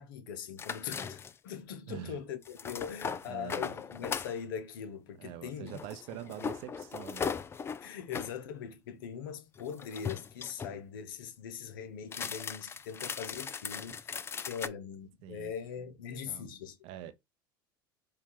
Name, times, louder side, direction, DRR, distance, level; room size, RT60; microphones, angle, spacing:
voice 1, 0.0-5.8 6.3-6.4 7.8-16.8, left 7 dB, 75° left, 0.7 m, -41 dB
sound 1, 0.6-1.5 2.4-4.4 5.7-8.3 9.6-10.8 12.0-14.7, left 6 dB, 20° left, 0.3 m, -38 dB
voice 2, 1.9-2.2 3.2-3.8 5.2-7.3 15.2-15.5 16.2-16.5 16.8-17.1, right 11 dB, 60° right, 0.7 m, -44 dB
4.4 x 2.4 x 3.6 m
hypercardioid pair, 85°, 11 cm